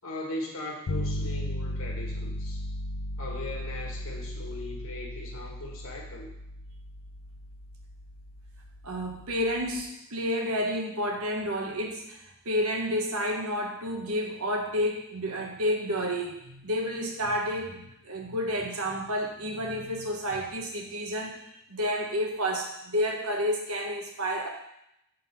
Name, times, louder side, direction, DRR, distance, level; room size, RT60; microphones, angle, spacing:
voice 1, 0.0-2.6 3.2-6.3, left 2 dB, 65° left, 0 dB, 1.4 m, -39 dB
sound 1, 0.9-9.8, left 1 dB, 85° left, 0.6 m, -36 dB
voice 2, 8.8-24.5, equal, 75° right, 2 dB, 1.1 m, -30 dB
5.7 x 4.0 x 5.7 m, 0.81 s
head